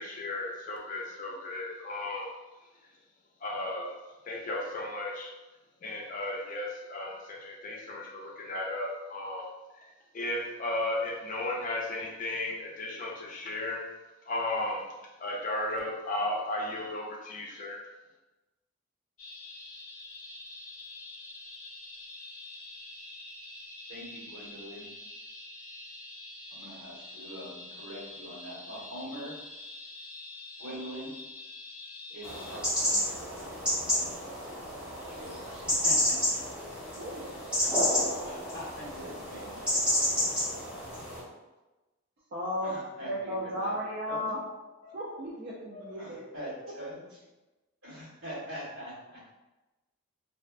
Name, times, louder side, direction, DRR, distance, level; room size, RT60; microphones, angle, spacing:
voice 1, 0.0-2.3 3.4-3.9 4.3-5.3 5.8-9.5 9.7-13.8 14.3-14.8 15.2-17.8, left 1 dB, 35° left, -2 dB, 0.4 m, -34 dB
sound 1, 19.2-32.6, left 2 dB, 90° left, 0.6 m, -46 dB
voice 2, 23.9-24.9 26.5-29.3 30.6-31.1 32.1-34.5 35.1-36.4 37.6-40.4 42.6-43.8 44.1-44.2 44.8-44.9 45.7-47.2 47.8-49.2, equal, 85° right, -8 dB, 1.3 m, -44 dB
sound 2, 32.2-41.2, left 1 dB, 5° right, 0.8 m, -30 dB
voice 3, 37.0-37.4 38.0-38.1 42.3-42.7 43.0-44.4 44.9-46.2, equal, 45° right, -5 dB, 0.3 m, -35 dB
2.4 x 2.2 x 2.3 m, 1.1 s
head